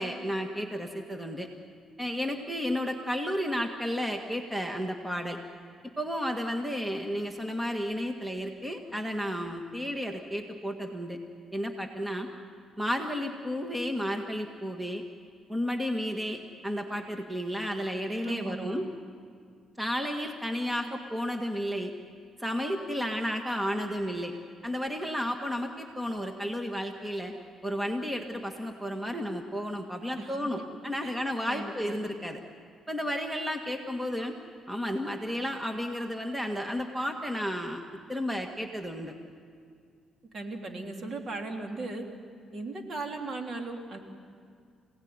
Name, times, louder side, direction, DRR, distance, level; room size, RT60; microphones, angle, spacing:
voice 1, 0.0-1.5 2.0-5.4 6.0-11.2 11.5-12.3 12.8-15.0 15.5-18.9 19.8-21.9 22.4-24.3 24.6-27.3 27.6-32.4 32.9-34.3 34.7-37.8 38.1-39.1, equal, 10° right, 4 dB, 1.8 m, -32 dB
voice 2, 18.2-18.8 30.2-30.4 31.0-31.1 31.4-32.0 40.3-42.0 42.5-44.0, right 3 dB, 50° right, 2 dB, 3.4 m, -37 dB
27.0 x 18.0 x 9.7 m, 2.2 s
cardioid pair, 90°, 0 cm